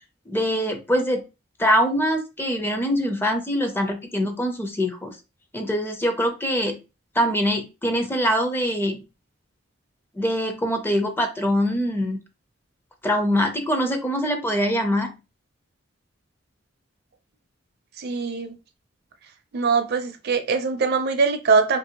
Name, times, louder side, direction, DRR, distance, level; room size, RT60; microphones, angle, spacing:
voice 1, 0.3-1.2 1.6-5.2 5.5-6.8 7.2-9.0 10.2-12.2 13.0-15.1, equal, 10° left, 0.4 m, -23 dB
voice 2, 18.0-18.6 19.5-21.8, right 4 dB, 55° right, 0.4 m, -22 dB
2.7 x 2.6 x 2.8 m
head